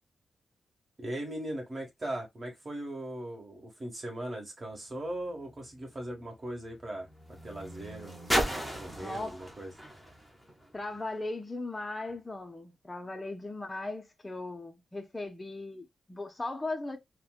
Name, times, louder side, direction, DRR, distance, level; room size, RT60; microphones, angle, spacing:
voice 1, 1.0-7.1 7.4-8.1 8.4-9.7, right 1 dB, 30° right, 1.4 m, -39 dB
sound 1, 4.8-11.3 12.1-12.2, equal, 5° right, 0.9 m, -37 dB
voice 2, 9.0-9.4 10.7-17.0, left 2 dB, 15° left, 0.5 m, -38 dB
4.2 x 2.1 x 2.3 m
wide cardioid pair, 130°, 0 cm